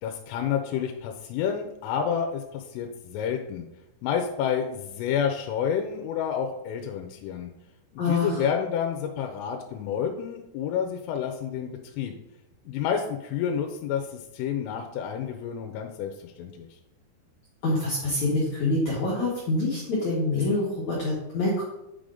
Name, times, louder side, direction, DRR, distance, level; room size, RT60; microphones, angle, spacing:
voice 1, 0.0-3.7 4.0-7.5 8.1-12.1 12.7-16.7, left 8 dB, 90° left, 4 dB, 3.2 m, -29 dB
voice 2, 8.0-8.4 17.6-21.6, left 2 dB, 65° left, -7 dB, 1.9 m, -26 dB
9.1 x 5.0 x 3.8 m, 0.90 s
omnidirectional pair, 5.7 m